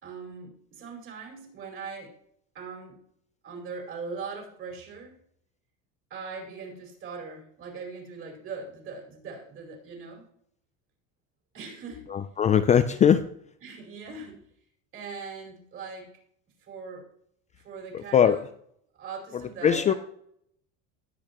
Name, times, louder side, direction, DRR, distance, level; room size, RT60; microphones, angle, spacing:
voice 1, 0.0-2.1 2.5-3.0 3.4-5.2 6.1-10.2 11.5-12.1 13.6-14.4 14.9-16.1 16.6-17.1 17.5-18.4 19.0-20.0, right 5 dB, 40° right, 1 dB, 5.1 m, -40 dB
voice 2, 12.1-13.2 17.9-18.4 19.6-19.9, left 8 dB, 25° left, 9 dB, 0.4 m, -20 dB
19.0 x 8.5 x 3.0 m, 0.69 s
cardioid pair, 140°, 32 cm